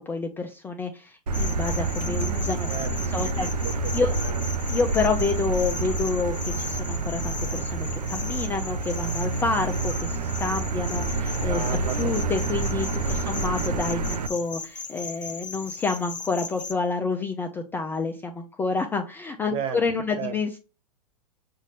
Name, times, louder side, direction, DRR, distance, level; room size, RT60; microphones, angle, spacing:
voice 1, 0.0-2.7 3.0-3.5 3.9-4.2 4.7-11.6 12.0-20.6, left 4 dB, 10° left, 0.3 m, -28 dB
sound 1, 1.3-16.7, left 4 dB, 90° left, 0.6 m, -37 dB
Motor vehicle (road), 1.3-14.3, right 3 dB, 70° right, 0.7 m, -28 dB
voice 2, 2.7-4.4 11.5-12.1 19.5-19.8 20.1-20.3, right 7 dB, 30° right, 0.7 m, -34 dB
6.2 x 2.5 x 3.2 m
figure-of-eight pair, 100°, 21 cm